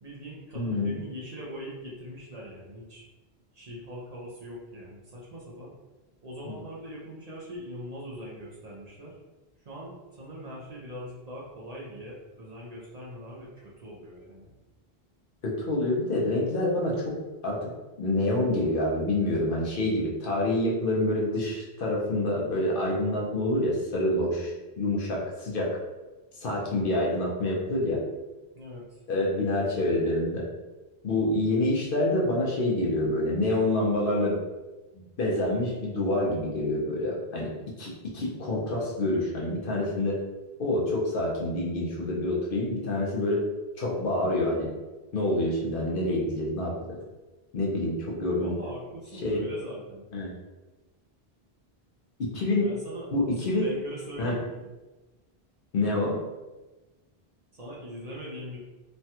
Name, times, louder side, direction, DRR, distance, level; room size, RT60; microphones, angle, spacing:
voice 1, 0.0-3.0 3.5-5.7 6.2-9.2 9.6-14.5 28.5-29.0 48.3-50.1 52.6-54.7 57.5-58.6, equal, 45° right, -5 dB, 0.6 m, -41 dB
voice 2, 0.5-1.0 6.4-6.6 15.4-17.7 18.0-25.8 26.4-28.0 29.1-30.5 31.0-34.4 34.9-40.2 40.6-43.4 43.8-44.7 45.1-47.0 47.5-48.6 49.2-49.5 50.1-50.3 52.3-52.7 53.1-53.7 54.2-54.4 55.7-56.2, left 1 dB, 60° left, -3 dB, 0.8 m, -27 dB
3.2 x 2.2 x 2.8 m, 1.1 s
omnidirectional pair, 1.1 m